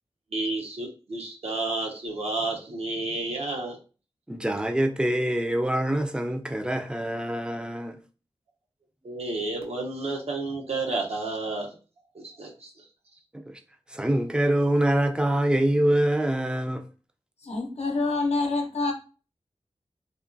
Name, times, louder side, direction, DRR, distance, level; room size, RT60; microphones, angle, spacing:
voice 1, 0.3-3.8 9.0-11.7 12.1-12.9, right 2 dB, 75° right, 0.7 m, -31 dB
voice 2, 4.3-8.0 13.3-13.6 13.9-16.8, right 1 dB, 10° right, 0.3 m, -25 dB
voice 3, 17.4-18.9, left 3 dB, 80° left, 0.6 m, -26 dB
2.8 x 2.3 x 2.5 m
wide cardioid pair, 80°, 11 cm